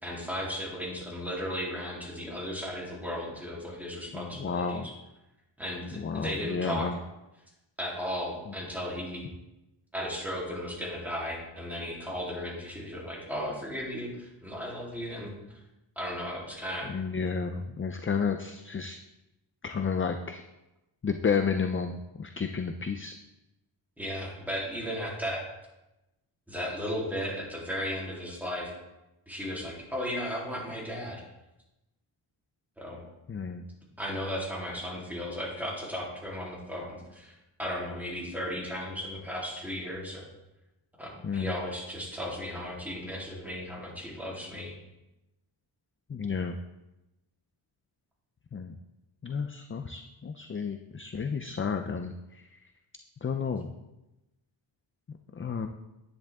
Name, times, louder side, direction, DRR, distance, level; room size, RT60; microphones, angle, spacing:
voice 1, 0.0-4.9 5.6-6.9 7.8-9.2 9.9-15.3 15.9-16.9 24.0-25.4 26.5-28.7 29.3-31.2 32.8-33.0 34.0-40.3 41.0-44.7, equal, 5° right, -5 dB, 3.3 m, -35 dB
voice 2, 4.1-4.9 5.9-7.0 16.8-19.0 19.6-20.4 21.0-23.1 33.3-33.7 41.2-41.6 46.1-46.6 48.5-48.8 49.2-52.4 53.2-53.7 55.3-55.7, left 5 dB, 25° left, 7 dB, 0.5 m, -31 dB
10.0 x 10.0 x 3.6 m, 0.97 s
wide cardioid pair, 145°, 48 cm